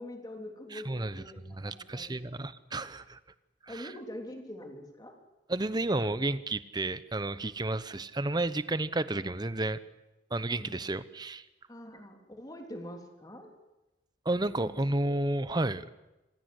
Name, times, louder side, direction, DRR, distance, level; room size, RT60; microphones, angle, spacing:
voice 1, 0.0-2.2 3.7-5.1 6.1-6.2 10.5-10.7 11.7-13.5 14.6-14.7, left 1 dB, 20° left, 3 dB, 3.3 m, -44 dB
voice 2, 0.7-3.2 3.6-3.9 5.5-9.8 10.3-11.5 14.2-15.9, right 2 dB, 25° right, 14 dB, 0.9 m, -32 dB
26.0 x 17.0 x 7.9 m, 0.99 s
head